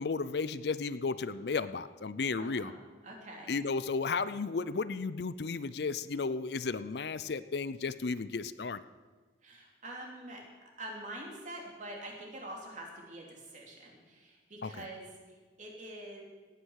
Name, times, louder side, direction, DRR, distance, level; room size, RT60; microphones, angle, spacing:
voice 1, 0.0-2.7 3.5-8.8 14.6-14.8, left 4 dB, 60° left, 14 dB, 0.5 m, -34 dB
voice 2, 2.4-2.7 3.0-3.5 9.4-10.4 10.8-16.2, right 1 dB, 40° right, 0 dB, 3.1 m, -45 dB
17.0 x 9.5 x 6.4 m, 1.4 s
head